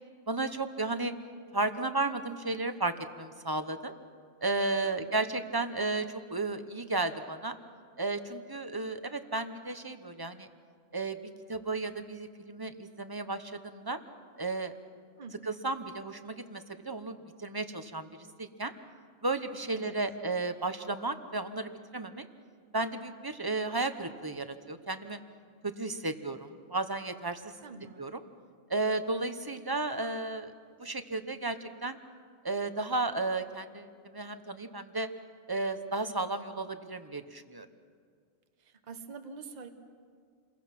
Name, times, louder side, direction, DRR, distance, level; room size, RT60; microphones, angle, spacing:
voice 1, 0.3-1.1 1.5-4.0 4.4-7.6 8.0-10.5 10.9-11.2 11.5-14.0 14.4-14.7 15.4-18.1 18.4-18.7 19.2-22.2 22.7-25.2 25.6-27.5 28.0-28.2 28.7-30.5 30.8-32.0 32.4-35.1 35.5-37.7, right 2 dB, 20° right, 9 dB, 1.0 m, -33 dB
voice 2, 27.6-28.1 38.6-39.7, right 4 dB, 40° right, 7 dB, 1.2 m, -46 dB
29.0 x 22.0 x 6.0 m, 2.1 s
omnidirectional pair, 1.2 m